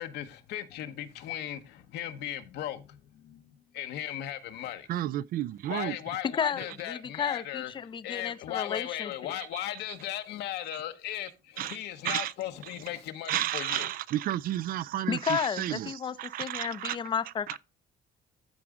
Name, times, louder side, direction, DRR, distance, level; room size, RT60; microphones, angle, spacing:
voice 1, 0.0-4.9 5.7-13.9, left 12 dB, 80° left, 1.0 m, -37 dB
voice 2, 4.9-6.0 9.4-9.5 9.9-10.0 11.6-11.8 12.0-12.3 13.3-17.0 17.5-17.6, right 13 dB, 60° right, 0.4 m, -32 dB
voice 3, 6.4-9.3 15.1-17.6, left 7 dB, 30° left, 0.5 m, -32 dB
13.5 x 4.8 x 3.6 m
cardioid pair, 110°, 17 cm